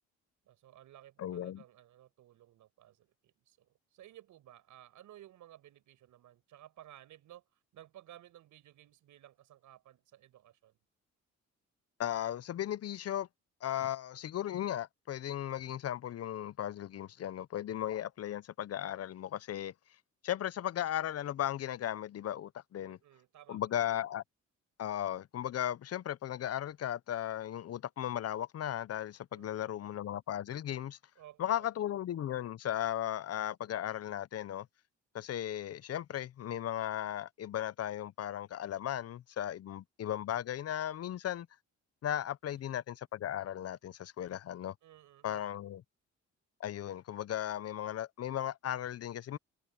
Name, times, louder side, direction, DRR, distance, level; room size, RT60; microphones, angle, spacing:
voice 1, 0.5-7.4 7.7-10.8 22.8-23.6 29.3-29.8 31.2-31.7 44.8-45.6, right 12 dB, 80° right, 5.6 m, -57 dB
voice 2, 1.2-1.6 12.0-13.3 13.6-19.7 20.2-23.0 23.5-24.2 24.8-31.0 31.4-34.7 35.1-41.5 42.0-44.7 45.2-45.8 46.6-49.4, left 11 dB, 55° left, 0.7 m, -36 dB
cardioid pair, 90°, 30 cm